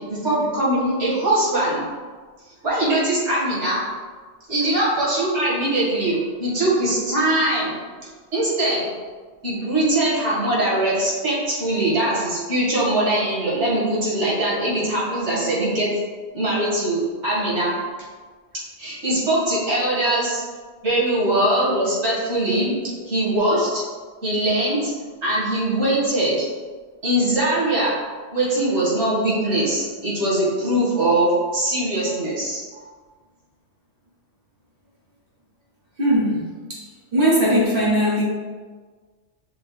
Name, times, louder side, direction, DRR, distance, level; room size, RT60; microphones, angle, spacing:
voice 1, 0.0-1.8 2.6-3.9 4.5-7.8 8.3-8.9 9.4-15.9 16.3-17.8 18.8-20.4 20.8-22.7 23.1-23.8 24.2-24.9 25.2-26.5 27.0-28.0 28.3-32.6, right 1 dB, 85° right, -8 dB, 2.0 m, -21 dB
voice 2, 36.0-36.8 37.1-38.2, equal, 55° right, -6 dB, 1.4 m, -19 dB
6.3 x 2.2 x 3.2 m, 1.5 s
omnidirectional pair, 1.2 m